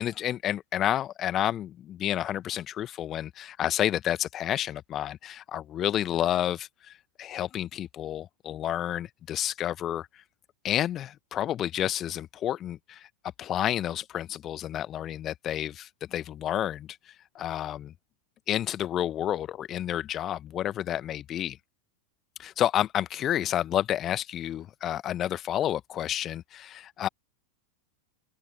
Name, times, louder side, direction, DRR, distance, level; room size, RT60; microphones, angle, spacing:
voice 1, 0.0-6.9 7.2-10.1 10.6-13.1 13.4-17.0 17.3-17.9 18.5-21.6 22.4-27.1, left 11 dB, 30° left, 1.2 m, -30 dB
open air
figure-of-eight pair, 90°, 0 cm